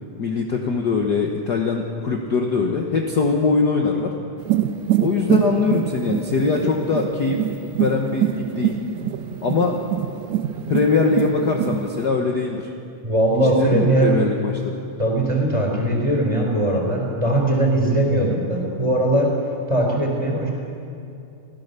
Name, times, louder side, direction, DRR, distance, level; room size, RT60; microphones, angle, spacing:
voice 1, 0.2-4.1 5.0-7.5 7.7-8.8 9.4-9.7 10.7-12.6 13.4-14.8, left 4 dB, 55° left, 1 dB, 1.1 m, -22 dB
sound 1, 4.4-12.1, right 11 dB, 75° right, 1.8 m, -25 dB
voice 2, 13.0-14.2 15.0-19.3 19.7-20.5, right 1 dB, 10° right, -1 dB, 3.9 m, -20 dB
25.5 x 16.5 x 6.9 m, 2.6 s
omnidirectional pair, 3.7 m